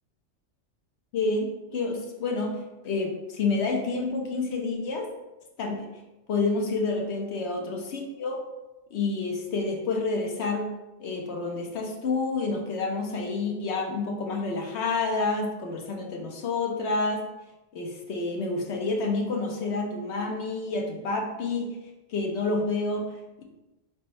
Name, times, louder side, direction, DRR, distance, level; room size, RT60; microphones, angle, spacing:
voice 1, 1.1-5.1 5.6-5.9 6.3-8.4 8.9-10.7 11.0-17.2 17.7-21.7 22.1-23.4, left 3 dB, 70° left, 0 dB, 1.0 m, -29 dB
4.2 x 3.4 x 3.0 m, 1.0 s
omnidirectional pair, 1.2 m